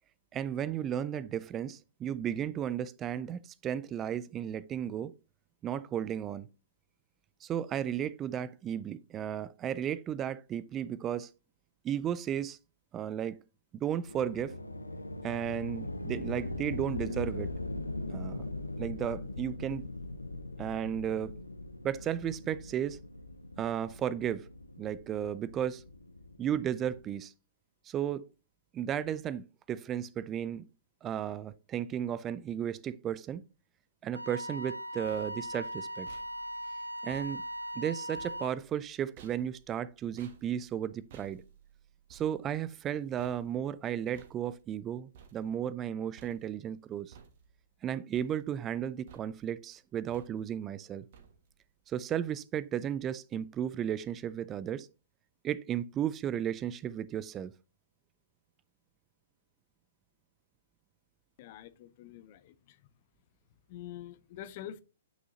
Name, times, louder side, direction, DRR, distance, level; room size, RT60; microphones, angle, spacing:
voice 1, 0.3-5.1 5.6-6.5 7.4-11.3 11.8-12.6 12.9-13.4 13.7-14.6 15.2-17.5 18.1-18.5 18.8-19.9 20.6-21.3 21.8-23.0 23.6-24.5 24.8-25.8 26.4-27.3 27.8-28.3 28.7-30.7 31.0-33.4 34.0-36.1 37.0-37.4 37.8-41.4 42.1-47.1 47.8-51.1 51.9-54.9 55.4-57.5, right 9 dB, 20° right, 0.3 m, -34 dB
sound 1, 14.1-27.1, left 2 dB, 90° left, 0.7 m, -40 dB
Wind instrument woodwind instrument, 34.1-38.6, equal, 85° right, 0.5 m, -39 dB
sound 2, 34.8-45.9 46.2-46.8 47.1-47.8 48.1-48.8 49.1-49.6 50.1-50.7 51.1-51.7, right 7 dB, 50° right, 1.6 m, -58 dB
voice 2, 61.4-62.9 63.7-64.8, left 11 dB, 45° left, 0.7 m, -46 dB
9.3 x 6.1 x 2.7 m
figure-of-eight pair, 115°, 0 cm